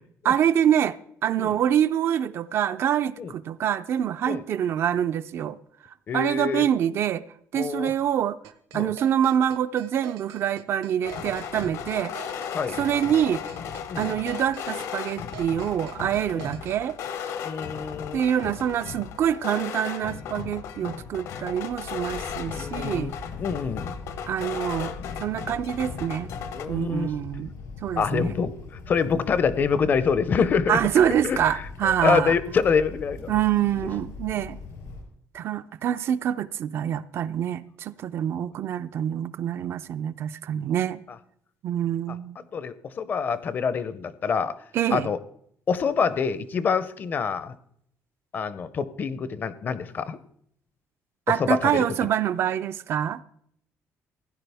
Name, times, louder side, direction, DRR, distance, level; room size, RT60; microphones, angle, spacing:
voice 1, 0.2-1.0 1.2-5.6 6.1-7.2 7.5-8.4 8.7-12.1 12.8-13.4 14.0-17.0 18.1-23.1 24.3-24.9 25.2-26.3 26.7-27.5 27.8-28.4 30.7-32.3 33.3-34.6 35.3-41.0 41.6-42.4 44.7-45.1 51.3-53.2, right 10 dB, 45° right, 0.4 m, -25 dB
voice 2, 6.1-6.6 7.5-7.9 8.7-8.9 12.5-12.8 13.9-14.1 16.3-16.5 17.4-18.2 22.5-24.0 26.5-27.1 28.0-30.8 31.2-31.4 31.8-33.2 42.1-42.2 42.5-44.5 44.9-45.2 45.7-47.6 48.3-50.2 51.3-51.8, left 6 dB, 35° left, 0.5 m, -26 dB
sound 1, 8.4-16.8, right 12 dB, 85° right, 0.9 m, -45 dB
sound 2, 11.0-26.7, left 8 dB, 65° left, 0.8 m, -36 dB
sound 3, 21.6-35.0, left 4 dB, 85° left, 3.9 m, -41 dB
16.0 x 10.0 x 3.4 m
cardioid pair, 170°, 6 cm